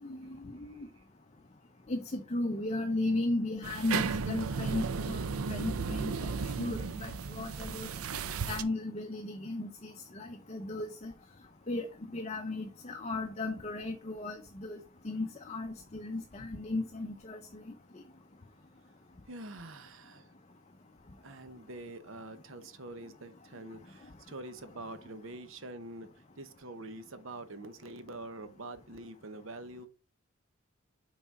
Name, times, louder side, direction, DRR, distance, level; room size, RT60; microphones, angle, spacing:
voice 1, 0.0-0.9 1.9-7.9 8.5-11.1 11.7-11.9 12.1-14.8 15.0-17.6, left 2 dB, 30° left, 0.6 m, -36 dB
voice 2, 0.7-1.0 19.3-20.3 21.2-29.9, right 2 dB, 70° right, 0.9 m, -45 dB
sound 1, 3.6-8.6, right 5 dB, 90° right, 0.6 m, -34 dB
6.0 x 4.1 x 5.3 m
head